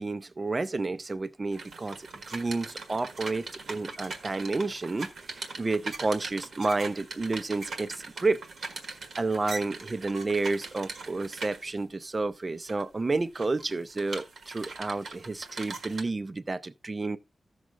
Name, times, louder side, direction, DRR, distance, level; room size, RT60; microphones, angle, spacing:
voice 1, 0.0-8.4 9.2-17.2, right 3 dB, 30° right, 0.5 m, -30 dB
Wooden Spinning Wheel, 1.5-11.8 12.4-12.8 13.2-16.0, right 3 dB, 80° right, 1.5 m, -41 dB
15.0 x 6.3 x 2.5 m
wide cardioid pair, 125°, 0 cm